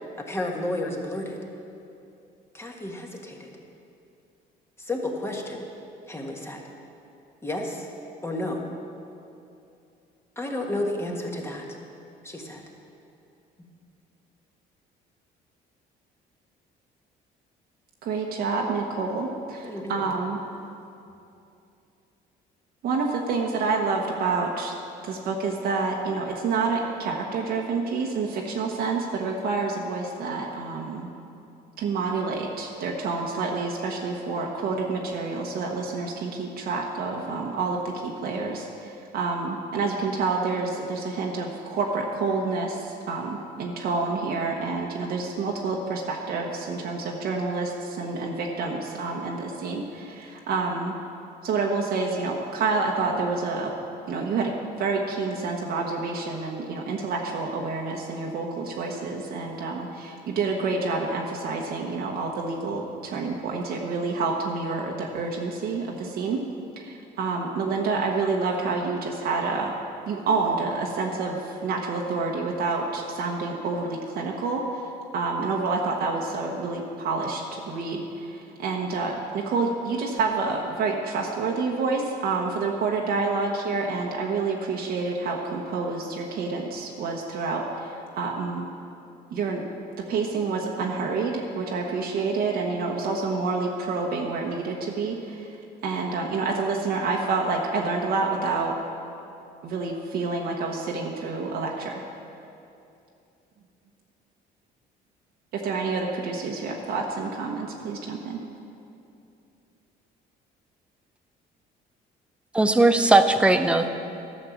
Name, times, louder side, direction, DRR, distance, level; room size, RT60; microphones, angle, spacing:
voice 1, 0.3-1.4 2.5-3.5 4.8-5.7 6.1-6.6 7.4-7.9 8.2-8.7 10.3-11.7 12.2-12.6 19.6-20.1, left 1 dB, 15° left, 0 dB, 1.6 m, -31 dB
voice 2, 18.0-20.4 22.8-24.7 25.0-31.1 31.8-50.9 51.4-53.7 54.1-66.4 66.8-69.7 70.1-88.7 89.3-89.6 90.0-95.6 95.8-98.8 99.6-102.0 105.5-108.4, right 4 dB, 65° right, -1 dB, 1.1 m, -28 dB
voice 3, 112.5-113.9, right 2 dB, 5° right, 7 dB, 0.6 m, -18 dB
12.0 x 6.5 x 7.2 m, 2.7 s
cardioid pair, 110°, 17 cm